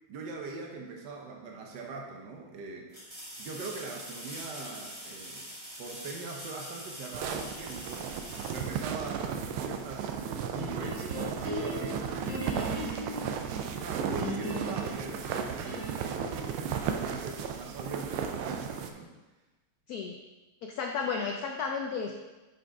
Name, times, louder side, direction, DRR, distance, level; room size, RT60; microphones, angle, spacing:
voice 1, 0.1-2.9 3.4-5.5 5.8-8.1 8.5-12.1 12.6-19.1, right 4 dB, 65° right, 1 dB, 1.5 m, -42 dB
sound 1, 1.5-1.6 2.9-9.5 12.4-12.5, equal, 15° right, 1.4 m, -44 dB
sound 2, 7.1-18.9, right 7 dB, 85° right, 1.4 m, -35 dB
sound 3, 10.5-13.3 14.2-16.2, equal, 45° right, 2.2 m, -38 dB
voice 2, 20.6-22.1, left 5 dB, 75° left, 2 dB, 0.9 m, -33 dB
6.4 x 5.1 x 4.7 m, 1.2 s
omnidirectional pair, 2.2 m